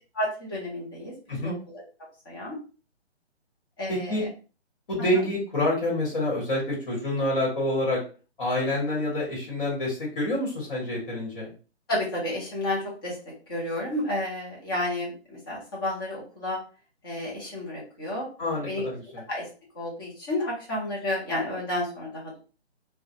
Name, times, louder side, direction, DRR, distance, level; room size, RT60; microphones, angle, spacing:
voice 1, 0.1-1.1 1.4-1.8 2.3-2.6 3.8-4.3 5.0-5.1 11.9-13.2 13.5-16.6 17.0-18.3 18.7-18.9 19.3-19.5 19.7-22.4, left 1 dB, 20° left, -4 dB, 0.7 m, -31 dB
voice 2, 3.9-4.2 4.9-8.0 8.4-11.5 18.4-19.2, left 1 dB, 40° left, -3 dB, 1.2 m, -27 dB
2.3 x 2.2 x 2.8 m, 0.36 s
hypercardioid pair, 160°, 34 cm